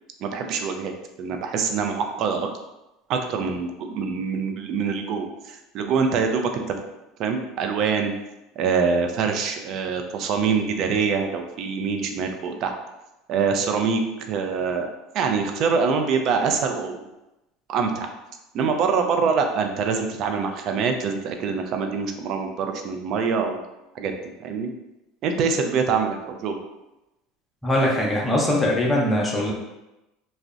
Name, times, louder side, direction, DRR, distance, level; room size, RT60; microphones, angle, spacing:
voice 1, 0.2-0.9 1.2-2.5 3.1-6.8 7.2-8.1 8.6-12.7 13.3-14.9 15.1-17.1 17.7-18.1 18.5-23.6 23.9-24.2 24.4-24.7 25.2-26.6, right 5 dB, 55° right, 5 dB, 0.3 m, -24 dB
voice 2, 27.6-29.5, left 1 dB, 10° left, -3 dB, 0.6 m, -21 dB
2.6 x 2.0 x 2.4 m, 0.96 s
hypercardioid pair, 85°, 0 cm